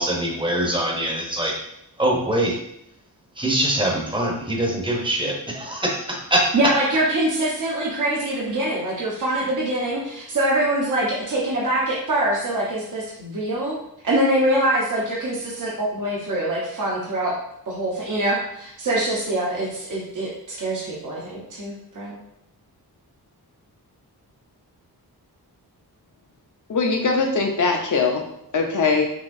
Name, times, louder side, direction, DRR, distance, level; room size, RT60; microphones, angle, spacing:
voice 1, 0.0-1.6 2.0-2.6 3.4-6.5, right 1 dB, 15° right, -1 dB, 0.9 m, -23 dB
voice 2, 6.5-13.8 14.0-17.3 17.7-22.2, right 1 dB, 50° right, -5 dB, 1.0 m, -24 dB
voice 3, 26.7-28.2 28.5-29.1, left 4 dB, 50° left, 2 dB, 0.8 m, -21 dB
5.9 x 2.8 x 2.7 m, 0.79 s
wide cardioid pair, 110°, 39 cm